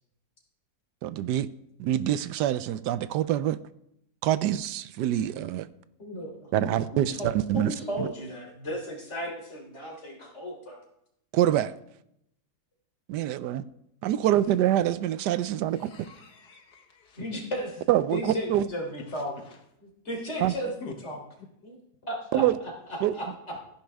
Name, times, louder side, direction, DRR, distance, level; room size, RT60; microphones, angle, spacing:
voice 1, 1.0-1.5 1.8-3.6 4.2-5.7 6.5-8.1 11.3-11.7 13.1-13.6 14.0-16.1 17.9-18.7 20.4-20.5 22.3-22.6 23.0-23.1, right 12 dB, 90° right, 1.2 m, -25 dB
voice 2, 6.0-10.8 14.1-14.3 17.2-17.8 18.1-19.3 19.8-21.2 21.6-21.8 22.0-22.4 23.1-23.3, equal, 40° left, 3.6 m, -35 dB
voice 3, 15.7-17.3 19.1-19.6 20.8-20.9, left 5 dB, 75° left, 1.8 m, -46 dB
14.5 x 10.5 x 3.5 m
omnidirectional pair, 1.8 m